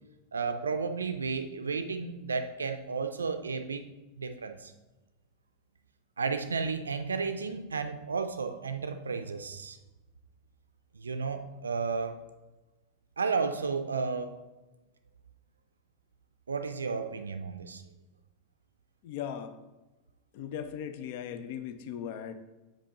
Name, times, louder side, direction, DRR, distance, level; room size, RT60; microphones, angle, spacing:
voice 1, 0.3-3.8 4.2-4.7 6.2-9.8 11.0-12.2 13.2-14.4 16.5-17.8, right 5 dB, 85° right, 8 dB, 0.4 m, -33 dB
voice 2, 19.0-19.5 20.3-22.3, left 9 dB, 60° left, 10 dB, 0.4 m, -38 dB
7.1 x 5.1 x 2.9 m, 1.1 s
hypercardioid pair, 90°, 0 cm